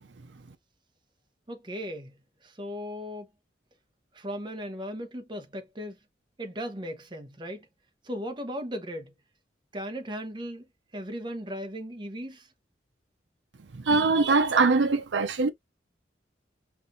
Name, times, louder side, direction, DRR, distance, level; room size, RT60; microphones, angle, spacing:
voice 1, 1.5-2.1 2.6-3.3 4.2-5.9 6.4-7.6 8.1-9.1 9.7-10.7 10.9-12.4, equal, 25° right, 0.9 m, -36 dB
voice 2, 13.7-15.5, right 4 dB, 85° right, 0.6 m, -22 dB
5.8 x 2.5 x 2.6 m
head